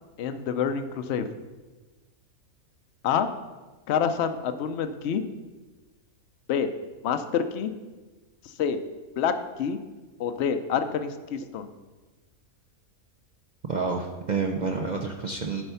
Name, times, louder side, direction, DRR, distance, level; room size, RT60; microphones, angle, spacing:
voice 1, 0.2-1.3 3.0-3.3 3.9-5.2 6.5-6.7 7.0-7.7 8.4-8.8 9.2-9.8 10.2-11.7, left 7 dB, 60° left, 9 dB, 0.8 m, -27 dB
voice 2, 13.7-15.6, right 4 dB, 60° right, 1 dB, 0.4 m, -29 dB
11.0 x 4.5 x 5.6 m, 1.2 s
omnidirectional pair, 1.6 m